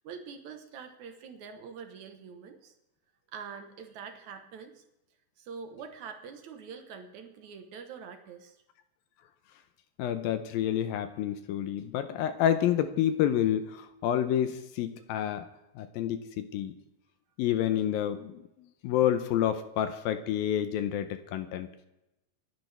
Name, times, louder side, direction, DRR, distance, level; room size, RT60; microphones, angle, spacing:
voice 1, 0.0-2.8 3.3-4.8 5.4-8.6, right 6 dB, 65° right, 6 dB, 2.0 m, -45 dB
voice 2, 10.0-15.5 15.8-16.7 17.4-18.4 18.8-21.7, left 10 dB, 80° left, 10 dB, 2.3 m, -29 dB
27.5 x 10.5 x 3.4 m, 0.92 s
omnidirectional pair, 4.7 m